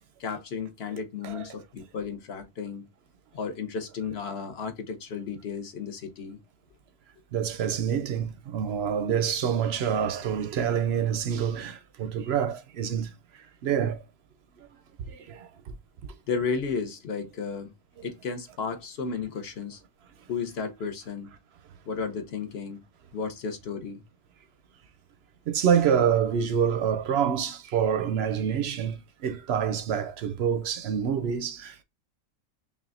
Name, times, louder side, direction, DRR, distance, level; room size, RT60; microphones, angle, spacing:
voice 1, 0.2-2.9 3.3-6.4 16.3-17.7 18.0-19.8 20.3-21.3 21.9-22.8 23.1-24.0, left 5 dB, 55° left, 1.0 m, -33 dB
voice 2, 7.3-13.1 13.6-14.0 15.1-15.5 25.5-31.8, right 8 dB, 65° right, 0.7 m, -27 dB
5.4 x 2.4 x 2.4 m
omnidirectional pair, 1.4 m